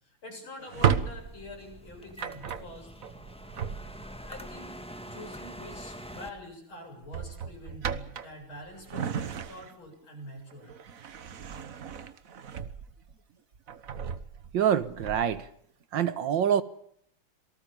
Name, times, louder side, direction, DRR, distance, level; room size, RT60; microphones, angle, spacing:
voice 1, 0.0-2.9 4.3-4.8 5.1-10.8, left 1 dB, 75° left, 8.3 m, -46 dB
Drawer open or close, 0.6-4.3 5.7-6.0 6.4-6.6 7.0-9.9 10.4-13.1 13.5-15.5, right 7 dB, 45° right, 1.4 m, -34 dB
sound 1, 0.7-6.3, equal, 5° left, 1.5 m, -45 dB
voice 2, 14.5-15.5 15.9-16.6, right 9 dB, 65° right, 1.7 m, -25 dB
27.0 x 19.0 x 6.9 m
omnidirectional pair, 2.3 m